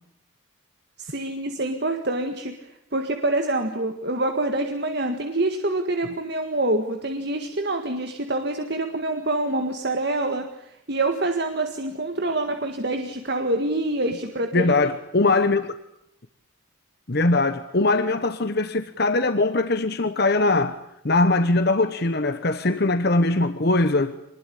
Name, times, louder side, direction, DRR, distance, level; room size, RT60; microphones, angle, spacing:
voice 1, 1.0-14.7, right 2 dB, 50° right, 1.8 m, -26 dB
voice 2, 14.5-15.7 17.1-20.8 21.0-24.2, left 2 dB, 50° left, 1.1 m, -21 dB
25.5 x 20.5 x 10.0 m
head